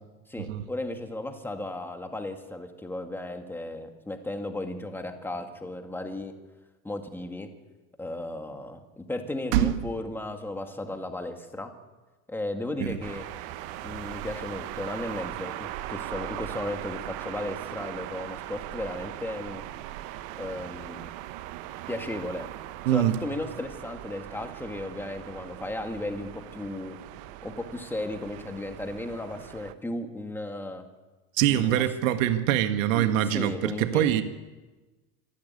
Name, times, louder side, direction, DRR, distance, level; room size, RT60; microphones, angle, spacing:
voice 1, 0.3-6.3 6.8-7.5 8.0-11.7 12.3-13.2 13.8-19.6 20.4-21.1 21.9-22.5 22.9-27.0 27.4-30.9 31.5-31.8 32.9-34.2, left 1 dB, 5° left, 5 dB, 2.0 m, -35 dB
sound 1, 13.0-29.7, right 14 dB, 45° right, 1.1 m, -39 dB
voice 2, 22.8-23.2 31.4-34.2, right 12 dB, 65° right, 8 dB, 1.6 m, -24 dB
26.0 x 12.0 x 9.7 m, 1.2 s
supercardioid pair, 145°, 42 cm